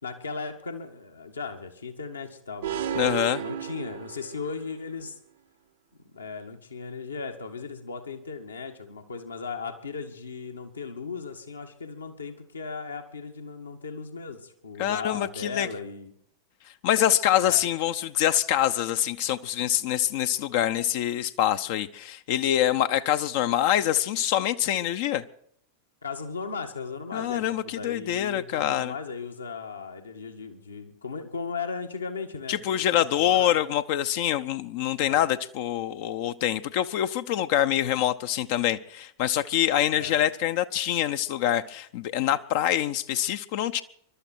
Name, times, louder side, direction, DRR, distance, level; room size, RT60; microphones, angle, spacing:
voice 1, 0.0-5.2 6.1-16.1 17.4-17.6 26.0-33.6 35.1-35.3 40.0-40.2, left 5 dB, 75° left, 5 dB, 1.9 m, -37 dB
sound 1, 2.6-4.6, right 10 dB, 60° right, 1.0 m, -33 dB
voice 2, 2.9-3.4 14.8-15.7 16.8-25.2 27.1-28.9 32.5-43.8, left 11 dB, 50° left, 10 dB, 0.7 m, -25 dB
24.5 x 12.5 x 4.5 m, 0.68 s
figure-of-eight pair, 90°, 0 cm